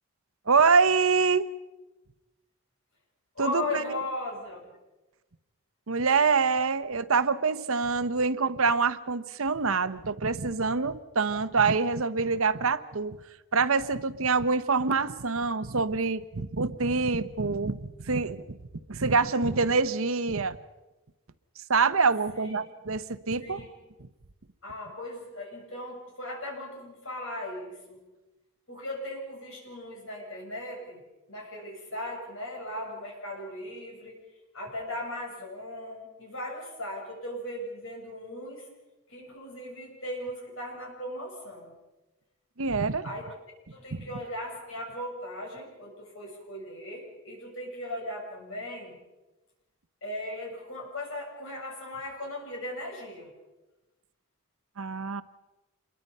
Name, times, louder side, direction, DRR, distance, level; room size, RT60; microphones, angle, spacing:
voice 1, 0.5-1.5 3.4-4.0 5.9-13.2 13.5-18.6 18.9-20.6 21.7-23.6 42.6-43.0 43.9-44.0 54.8-55.2, right 4 dB, 75° right, 13 dB, 0.9 m, -25 dB
voice 2, 3.3-4.6 22.3-22.6 23.4-23.7 24.6-28.0 28.7-31.0 31.3-34.2 34.5-38.7 39.1-41.8 43.0-43.3 43.7-49.0 50.0-53.3, left 1 dB, 65° left, -1 dB, 7.6 m, -38 dB
27.0 x 22.5 x 5.5 m, 1.1 s
head